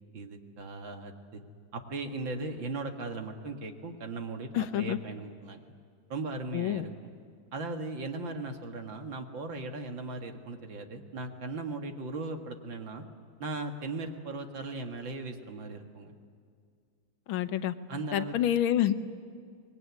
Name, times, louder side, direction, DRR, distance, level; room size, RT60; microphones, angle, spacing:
voice 1, 0.1-1.4 1.7-5.6 6.1-6.9 7.5-13.0 13.4-16.1 17.9-18.4, right 3 dB, 70° right, 5 dB, 2.5 m, -38 dB
voice 2, 4.5-5.0 6.5-6.9 17.3-17.7 18.1-18.9, left 11 dB, 85° left, 12 dB, 1.7 m, -27 dB
25.0 x 21.0 x 9.5 m, 2.2 s
omnidirectional pair, 2.2 m